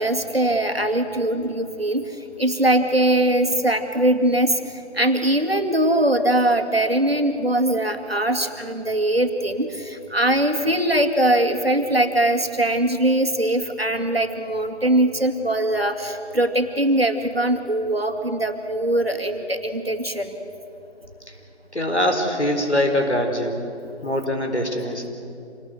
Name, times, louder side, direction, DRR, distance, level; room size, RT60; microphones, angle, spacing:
voice 1, 0.0-20.4, right 1 dB, 55° right, 5 dB, 2.4 m, -21 dB
voice 2, 21.7-23.6 24.0-25.1, left 1 dB, 70° left, 4 dB, 4.5 m, -23 dB
27.0 x 19.0 x 7.9 m, 2.8 s
figure-of-eight pair, 180°, 35 cm